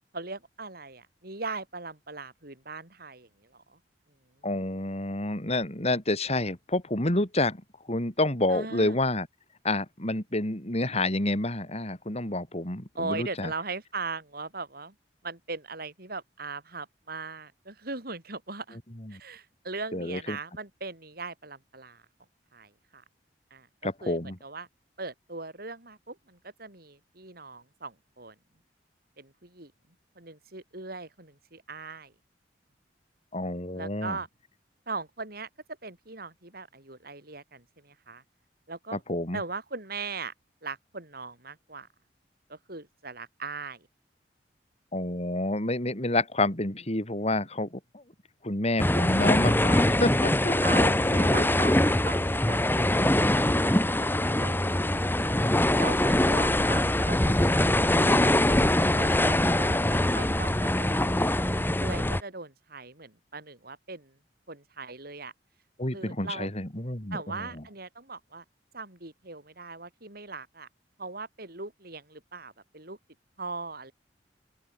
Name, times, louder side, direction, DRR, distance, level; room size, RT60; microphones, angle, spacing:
voice 1, 0.1-3.8 8.5-9.0 13.0-14.9 15.2-18.8 19.1-22.0 22.5-23.0 23.5-24.7 25.0-28.3 29.2-29.7 30.2-32.1 33.7-34.3 34.9-35.5 35.8-38.2 38.7-39.0 39.3-40.3 40.6-41.9 42.5-43.9 50.6-55.3 55.7-57.6 58.0-64.2 64.5-65.3 65.9-66.5 67.1-68.4 68.7-70.7 71.0-73.0 73.4-73.9, right 3 dB, 60° right, 7.5 m, -39 dB
voice 2, 4.4-7.6 7.9-9.3 9.6-13.5 19.1-19.2 19.9-20.4 23.8-24.4 33.3-34.2 38.9-39.4 44.9-48.0 48.4-51.7 65.8-67.5, left 2 dB, 40° left, 4.7 m, -29 dB
sound 1, 48.8-62.2, left 1 dB, 10° left, 1.7 m, -23 dB
open air
head